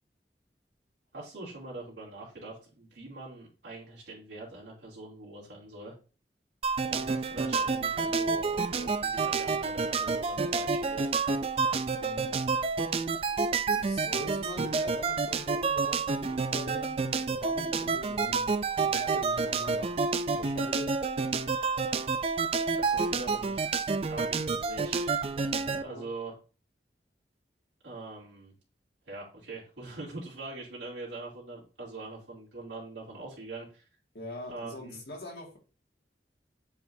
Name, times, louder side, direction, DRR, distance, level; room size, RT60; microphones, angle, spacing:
voice 1, 1.1-5.9 6.9-11.1 22.6-25.2 25.8-26.3 27.8-28.5 29.1-33.9 34.5-35.0, right 2 dB, 85° right, -6 dB, 2.7 m, -43 dB
sound 1, 6.6-25.8, right 4 dB, 35° right, 0.3 m, -29 dB
voice 2, 12.0-12.3 13.8-18.5 18.8-19.9 20.3-21.0 25.5-26.1 34.1-35.6, left 1 dB, 65° left, 0 dB, 2.0 m, -43 dB
7.8 x 4.8 x 2.6 m, 0.36 s
head